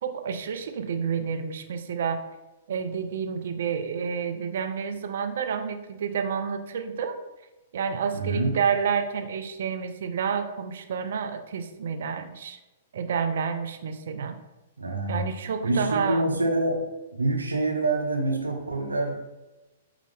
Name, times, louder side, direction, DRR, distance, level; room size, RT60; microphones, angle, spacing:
voice 1, 0.0-2.2 2.7-7.2 7.7-12.6 12.9-14.4 15.1-16.4, right 6 dB, 65° right, 7 dB, 0.4 m, -29 dB
voice 2, 8.1-8.5 14.8-15.2 15.6-16.9 17.1-19.2, right 2 dB, 90° right, 1 dB, 0.8 m, -26 dB
5.4 x 2.4 x 3.5 m, 1.1 s
hypercardioid pair, 115°, 0 cm